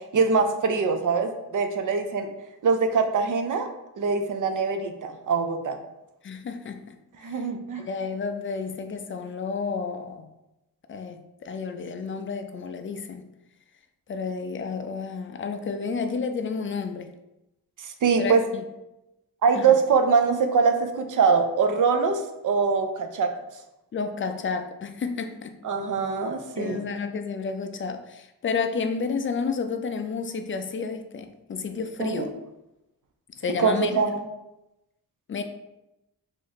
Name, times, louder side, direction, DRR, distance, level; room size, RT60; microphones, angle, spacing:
voice 1, 0.1-2.3 2.6-3.7 4.0-5.8 7.2-7.8 17.8-18.4 19.4-23.3 25.6-26.8 32.0-32.3 33.6-34.2, right 5 dB, 55° right, 6 dB, 0.5 m, -23 dB
voice 2, 6.2-6.9 7.2-7.5 7.7-10.3 10.9-13.3 14.1-17.1 18.2-18.6 19.5-19.8 23.9-25.6 26.6-32.3 33.4-34.0 35.3-35.4, left 5 dB, 35° left, 7 dB, 0.4 m, -31 dB
3.0 x 2.6 x 4.0 m, 0.92 s
wide cardioid pair, 95°, 38 cm